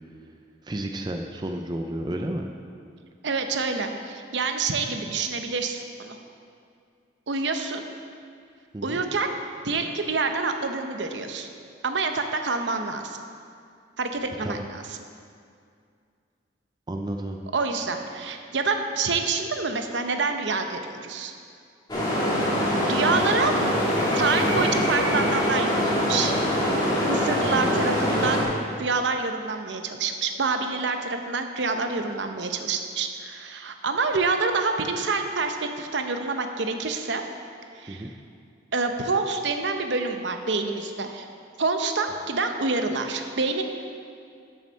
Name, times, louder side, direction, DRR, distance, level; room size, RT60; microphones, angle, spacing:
voice 1, 0.6-2.5 8.7-9.0 14.4-14.7 16.9-17.4 23.3-23.5 24.4-24.7 27.4-27.6 37.9-38.1, right 1 dB, 25° right, 3 dB, 0.4 m, -32 dB
voice 2, 3.2-6.2 7.3-7.8 8.8-9.4 9.6-11.5 11.8-13.2 14.0-15.0 17.5-21.3 22.7-23.5 24.1-26.3 27.1-28.4 28.8-37.2 37.7-38.1 38.7-41.3 41.6-43.6, right 4 dB, 70° right, 6 dB, 0.7 m, -27 dB
sound 1, 21.9-28.4, equal, 20° left, 2.0 m, -23 dB
8.8 x 6.4 x 6.3 m, 2.3 s
head